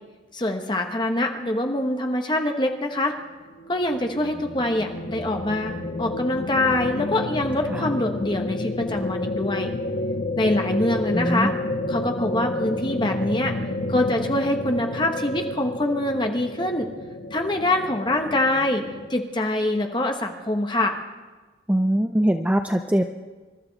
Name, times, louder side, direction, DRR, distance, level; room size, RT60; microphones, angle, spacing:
voice 1, 0.3-3.1 3.7-9.7 10.3-11.5 11.9-13.5 13.9-16.9 17.3-18.8 19.1-21.0, left 1 dB, 25° left, 4 dB, 1.1 m, -24 dB
sound 1, 3.2-19.1, left 2 dB, 75° left, 1.4 m, -30 dB
voice 2, 11.1-11.6 21.7-23.0, right 1 dB, 5° right, 6 dB, 0.4 m, -22 dB
26.5 x 12.5 x 4.0 m, 1.3 s
head